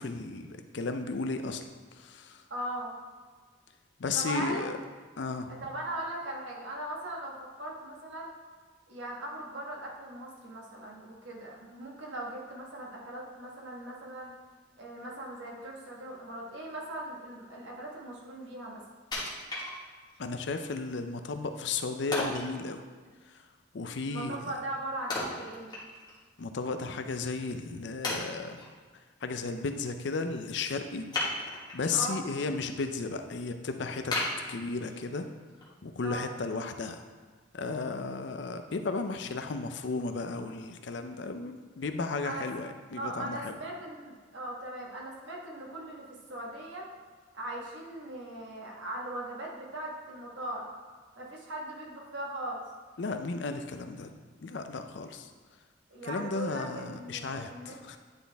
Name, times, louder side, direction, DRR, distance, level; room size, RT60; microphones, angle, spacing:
voice 1, 0.0-2.4 4.0-4.8 5.2-5.5 20.2-22.8 23.3-23.4 23.7-24.5 26.4-28.6 29.2-31.1 31.7-34.2 34.5-35.3 35.8-37.0 37.5-43.6 53.0-54.1 54.4-55.3 56.0-58.0, left 3 dB, 65° left, 7 dB, 0.5 m, -34 dB
voice 2, 2.5-2.9 4.1-4.7 5.5-8.3 8.9-14.3 14.8-18.8 24.1-25.7 31.9-32.2 36.0-36.3 42.2-42.5 42.9-46.8 47.3-50.6 51.2-52.6 55.9-57.8, right 1 dB, 80° right, -3 dB, 1.5 m, -39 dB
Wood, 19.1-20.2 20.7-20.8 22.1-22.5 25.1-26.2 26.6-26.7 27.3-27.4 28.0-28.7 31.1-31.9 32.3-32.8 33.2-33.3 34.1-35.1 35.6-35.7, left 2 dB, 25° left, 1.5 m, -34 dB
9.6 x 4.2 x 3.4 m, 1.5 s
head